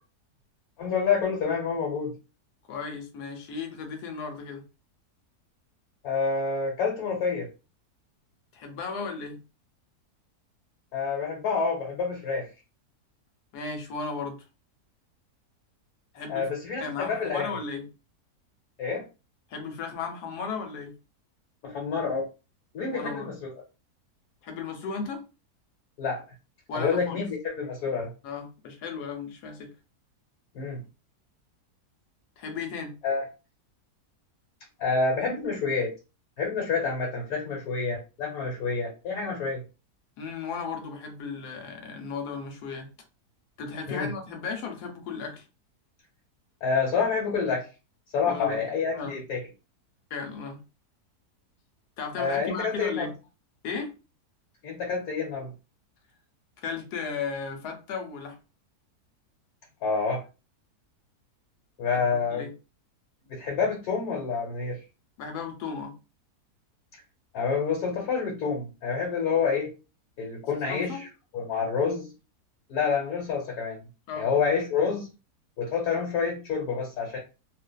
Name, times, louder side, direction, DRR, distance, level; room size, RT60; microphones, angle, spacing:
voice 1, 0.8-2.1 6.0-7.5 10.9-12.5 16.3-17.5 18.8-19.0 21.6-22.3 22.7-23.5 26.0-26.2 26.7-28.1 30.5-30.8 33.0-33.2 34.8-35.9 36.4-39.6 43.9-44.1 46.6-47.7 48.1-49.4 52.2-53.1 54.6-55.5 59.8-60.2 61.8-62.5 63.3-64.8 67.3-69.7 70.2-71.1 71.3-72.1 72.7-73.8 74.2-75.1 75.6-77.2, left 5 dB, 70° left, 1.3 m, -28 dB
voice 2, 2.7-4.6 8.5-9.4 13.5-14.4 16.1-16.5 16.8-17.9 19.5-21.0 22.9-23.3 24.4-25.2 26.7-27.2 28.2-29.7 32.4-33.0 40.2-42.9 43.6-45.4 48.3-48.6 48.9-49.2 50.1-50.6 52.0-53.1 53.6-53.9 56.6-58.4 61.9-62.5 65.2-66.0 70.7-71.0 74.1-74.3, left 5 dB, 90° left, 1.2 m, -35 dB
2.5 x 2.4 x 2.2 m
omnidirectional pair, 1.7 m